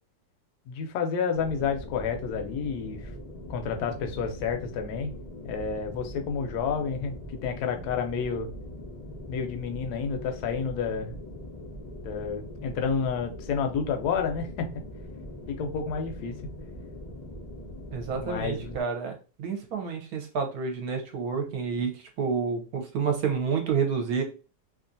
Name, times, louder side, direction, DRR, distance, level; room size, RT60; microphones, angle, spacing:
voice 1, 0.7-3.1 3.5-5.1 5.4-8.5 9.3-11.2 12.0-14.7 15.5-16.3 18.2-18.8, left 6 dB, 70° left, 5 dB, 1.1 m, -30 dB
sound 1, 1.3-18.8, left 1 dB, 55° left, 0.4 m, -41 dB
voice 2, 17.9-24.2, right 6 dB, 65° right, 3 dB, 1.1 m, -29 dB
2.9 x 2.4 x 2.6 m, 0.33 s
omnidirectional pair, 1.9 m